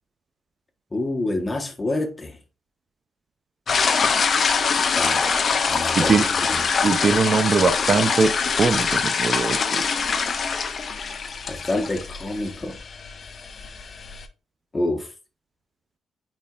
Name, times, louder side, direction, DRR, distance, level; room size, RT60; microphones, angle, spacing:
voice 1, 0.9-2.3 4.9-6.1 6.4-6.6 11.5-12.8 14.7-15.1, left 2 dB, 25° left, 1.4 m, -27 dB
sound 1, 3.7-14.2, left 5 dB, 45° left, 0.9 m, -24 dB
voice 2, 5.9-6.2 6.8-8.3 8.6-9.8, right 4 dB, 40° right, 0.6 m, -21 dB
8.8 x 4.3 x 2.5 m
cardioid pair, 90°, 0 cm